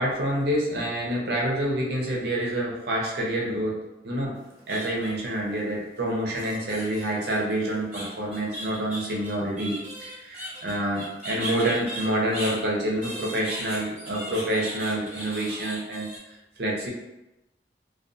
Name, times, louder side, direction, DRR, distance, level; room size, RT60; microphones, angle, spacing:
voice 1, 0.0-3.8 4.0-4.3 4.7-16.1 16.6-16.9, right 1 dB, 60° right, -2 dB, 0.6 m, -27 dB
sound 1, 4.4-5.3 6.4-12.6 13.0-16.2, right 1 dB, 10° right, 0.9 m, -37 dB
2.3 x 2.3 x 2.5 m, 0.95 s
head